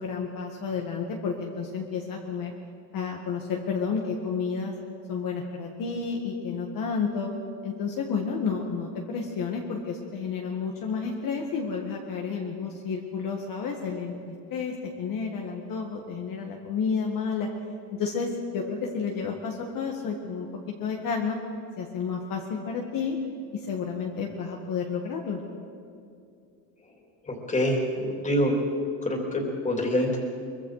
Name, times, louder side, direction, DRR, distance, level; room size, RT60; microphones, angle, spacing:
voice 1, 0.0-2.5 2.9-4.7 5.1-7.3 7.6-17.5 18.0-20.5 20.8-21.4 21.8-23.2 23.5-25.4, left 5 dB, 45° left, 0 dB, 1.9 m, -31 dB
voice 2, 27.3-28.5 29.0-30.2, left 1 dB, 15° left, 1 dB, 3.2 m, -26 dB
23.5 x 22.5 x 4.9 m, 2.4 s
cardioid pair, 145°, 46 cm